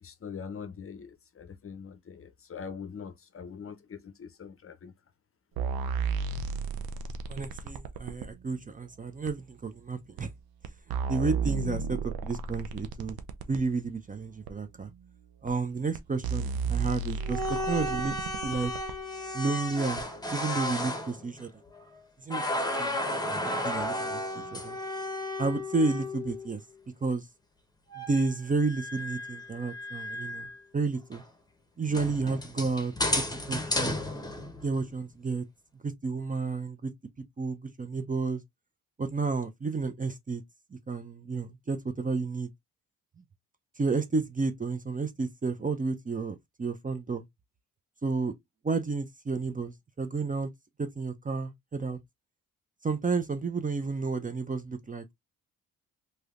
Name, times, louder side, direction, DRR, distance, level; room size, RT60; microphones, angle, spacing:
voice 1, 0.0-4.9, left 6 dB, 40° left, 0.6 m, -43 dB
sound 1, 5.6-8.3 9.3-9.4 10.2-10.3 10.6-13.6 14.5-14.6 15.5-15.6 15.9-19.0 20.0-20.1, right 5 dB, 85° right, 0.6 m, -33 dB
voice 2, 7.3-10.3 11.1-13.2 13.5-14.9 15.4-17.4 17.7-18.7 19.3-21.5 22.2-22.4 22.8-24.8 25.4-26.6 27.0-27.2 28.0-30.5 30.7-31.2 31.8-34.0 34.6-35.4 35.8-36.9 37.4-38.4 39.0-40.4 40.7-42.5 43.8-47.2 48.0-48.3 48.6-50.5 50.8-52.0 52.8-55.1, right 4 dB, 25° right, 0.5 m, -31 dB
sound 2, 17.2-22.0 22.3-26.6 27.9-30.6 31.1-31.2 31.9-34.9, left 1 dB, 10° left, 0.9 m, -33 dB
3.2 x 2.8 x 2.4 m
cardioid pair, 70°, 35 cm